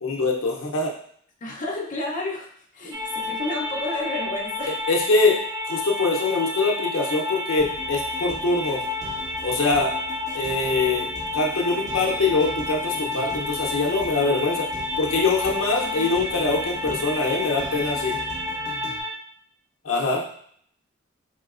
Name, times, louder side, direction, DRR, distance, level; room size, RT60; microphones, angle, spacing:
voice 1, 0.0-0.9 4.9-8.8 9.4-9.9 10.3-11.1 11.3-14.7 15.0-18.2 19.8-20.2, left 3 dB, 85° left, -1 dB, 0.7 m, -23 dB
voice 2, 1.4-2.5 2.7-4.8 15.8-17.1, left 2 dB, 40° left, -2 dB, 0.6 m, -32 dB
sound 1, 2.9-19.1, left 2 dB, 15° right, 0.4 m, -30 dB
sound 2, 7.6-19.0, equal, 40° right, 1.5 m, -41 dB
4.3 x 3.1 x 2.4 m, 0.62 s
head